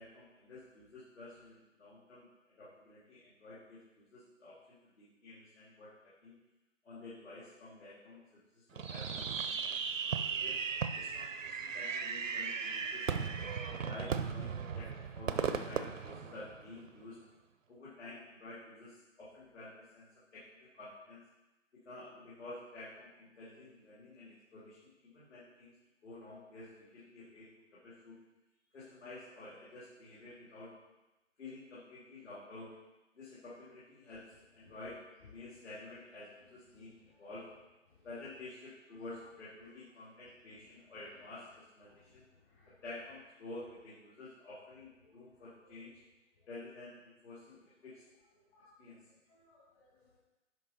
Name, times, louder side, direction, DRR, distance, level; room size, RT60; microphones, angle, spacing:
voice 1, 0.0-6.3 6.8-10.6 10.9-13.3 13.8-17.2 17.7-20.1 20.3-21.2 21.8-25.7 26.0-28.2 28.7-30.7 31.4-32.8 33.1-36.9 37.2-37.5 38.0-42.2 42.8-45.9 46.5-48.0 48.8-49.1, left 2 dB, 65° left, -9 dB, 3.0 m, -50 dB
Fireworks, 8.8-16.9, right 6 dB, 85° right, 0.7 m, -37 dB
voice 2, 36.7-37.3 37.9-38.1 40.7-40.8 41.8-42.8 45.0-45.7 48.5-48.8 49.3-50.2, left 3 dB, 45° left, -7 dB, 2.5 m, -67 dB
9.6 x 5.4 x 4.3 m, 1.0 s
hypercardioid pair, 155°, 38 cm